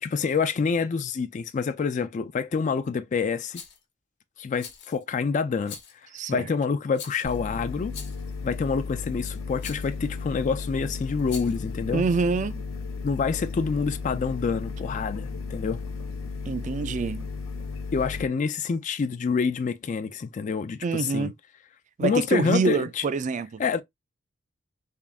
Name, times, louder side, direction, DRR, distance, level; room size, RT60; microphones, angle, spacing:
voice 1, 0.0-3.6 4.4-5.8 6.3-7.9 8.4-12.0 13.0-15.8 17.9-21.3 22.0-23.0 23.6-23.8, left 5 dB, 40° left, 0.3 m, -27 dB
Rattle, 3.5-3.8 4.6-5.0 5.6-6.0 6.9-7.4 7.9-8.3 9.6-9.9 11.2-11.7, left 7 dB, 60° left, 1.0 m, -42 dB
voice 2, 6.1-6.5 11.9-12.6 16.5-17.3 20.8-21.3 22.0-23.6, right 4 dB, 40° right, 0.4 m, -26 dB
sound 1, 7.2-18.3, left 4 dB, 80° left, 0.7 m, -34 dB
3.6 x 2.4 x 3.4 m
head